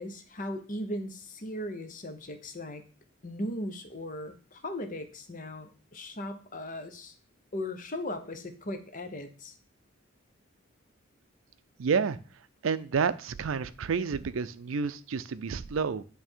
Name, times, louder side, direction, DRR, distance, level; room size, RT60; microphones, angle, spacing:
voice 1, 0.0-2.8 3.2-7.1 7.5-9.5, left 1 dB, 40° left, 8 dB, 0.8 m, -38 dB
voice 2, 11.8-12.2 12.6-16.0, right 5 dB, 75° right, 15 dB, 0.5 m, -29 dB
8.6 x 3.4 x 4.4 m, 0.39 s
head